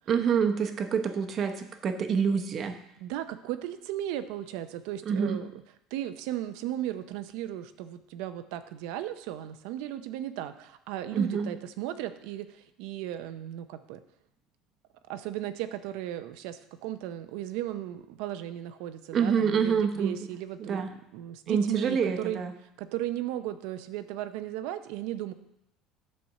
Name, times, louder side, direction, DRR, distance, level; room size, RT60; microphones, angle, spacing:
voice 1, 0.1-2.8 5.1-5.4 11.1-11.5 19.1-20.1 20.6-20.9 21.5-22.5, right 6 dB, 40° right, 7 dB, 0.9 m, -27 dB
voice 2, 3.0-5.6 5.9-14.0 15.1-20.8 21.1-22.4 22.8-25.3, right 12 dB, 75° right, 10 dB, 0.6 m, -36 dB
8.6 x 4.3 x 6.4 m, 0.81 s
cardioid pair, 130°, 0 cm